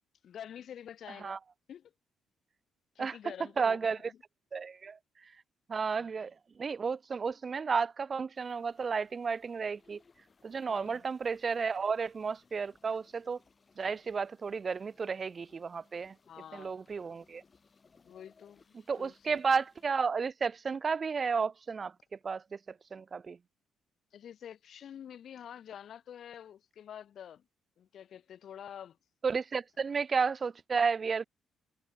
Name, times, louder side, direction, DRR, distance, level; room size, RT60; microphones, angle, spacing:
voice 1, 0.2-1.4 1.7-1.9 2.9-4.2 6.0-6.1 10.7-11.1 16.3-16.7 18.0-19.4 24.1-27.4 27.8-29.0 29.9-30.0, left 9 dB, 65° left, 2.7 m, -48 dB
voice 2, 3.6-4.0 4.5-5.0 5.7-6.3 6.6-10.0 10.4-13.4 13.8-16.1 16.5-17.4 18.9-21.9 22.2-22.6 22.9-23.4 29.2-31.3, right 5 dB, 40° right, 0.3 m, -32 dB
sound 1, 8.3-19.9, left 4 dB, 35° left, 3.1 m, -66 dB
cardioid pair, 90°, 0 cm